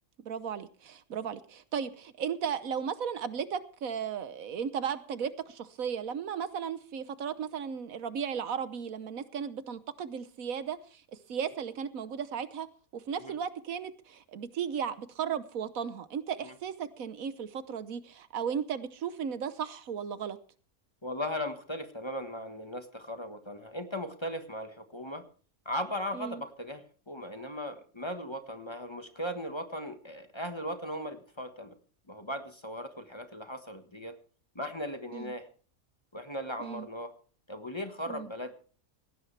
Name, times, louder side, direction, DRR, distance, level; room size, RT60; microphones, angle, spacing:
voice 1, 0.2-11.0 11.3-12.7 12.9-20.4 26.1-26.4 35.1-35.3 36.6-36.9 38.1-38.3, right 7 dB, 70° right, 13 dB, 1.3 m, -35 dB
voice 2, 21.0-25.2 25.6-31.7 32.1-34.2 34.5-35.5 36.1-37.1 37.5-38.6, equal, 20° left, 7 dB, 1.4 m, -38 dB
18.5 x 16.5 x 3.3 m, 0.40 s
omnidirectional pair, 1.5 m